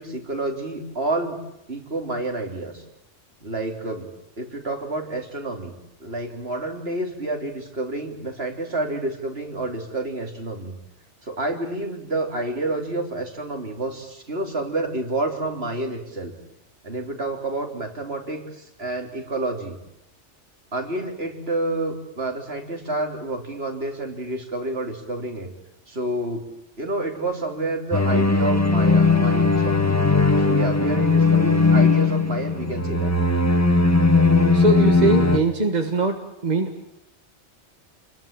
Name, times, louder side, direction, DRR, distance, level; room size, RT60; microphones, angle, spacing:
voice 1, 0.0-1.4 1.7-2.8 3.4-4.1 4.4-5.7 6.0-10.8 11.2-16.4 16.8-19.8 20.7-25.5 25.9-26.5 26.8-30.0 30.4-33.1, right 2 dB, 60° right, 4 dB, 3.8 m, -29 dB
sound 1, 27.9-35.4, left 3 dB, 15° left, 1.8 m, -18 dB
voice 2, 34.5-36.9, right 2 dB, 40° right, 4 dB, 1.9 m, -22 dB
28.5 x 22.0 x 8.9 m, 0.83 s
omnidirectional pair, 1.2 m